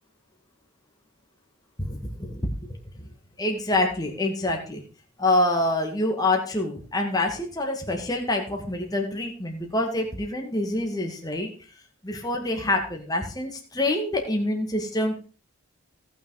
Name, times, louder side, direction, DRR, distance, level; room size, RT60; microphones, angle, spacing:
voice 1, 1.8-3.1 3.4-4.8 5.2-11.5 12.0-15.2, left 1 dB, 15° left, 2 dB, 2.0 m, -26 dB
17.5 x 6.2 x 4.9 m, 0.38 s
head